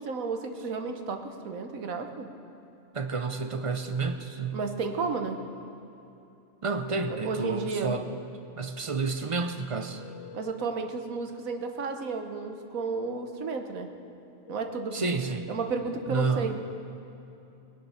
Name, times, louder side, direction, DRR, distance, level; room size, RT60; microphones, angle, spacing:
voice 1, 0.0-2.3 4.5-5.4 7.2-7.9 10.3-13.9 14.5-15.0 15.5-16.6, right 4 dB, 80° right, 5 dB, 1.5 m, -32 dB
voice 2, 2.9-4.6 6.6-8.0 8.5-10.0 14.9-15.5 16.1-16.5, right 4 dB, 45° right, 7 dB, 0.4 m, -30 dB
sound 1, 10.0-10.5 14.5-16.3, left 7 dB, 70° left, 1.3 m, -46 dB
20.0 x 10.0 x 5.7 m, 2.9 s
omnidirectional pair, 1.4 m